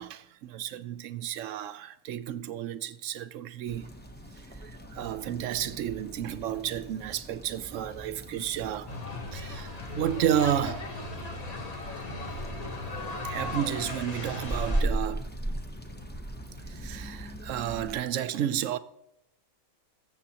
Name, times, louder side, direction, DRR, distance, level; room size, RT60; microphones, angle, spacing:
voice 1, 0.0-3.9 4.6-8.9 9.3-10.9 13.2-15.3 16.7-18.8, right 10 dB, 70° right, 0.9 m, -32 dB
sound 1, 3.7-18.0, right 1 dB, 10° left, 0.6 m, -38 dB
sound 2, 8.9-14.8, left 2 dB, 30° left, 1.1 m, -37 dB
21.0 x 7.4 x 2.8 m
omnidirectional pair, 1.5 m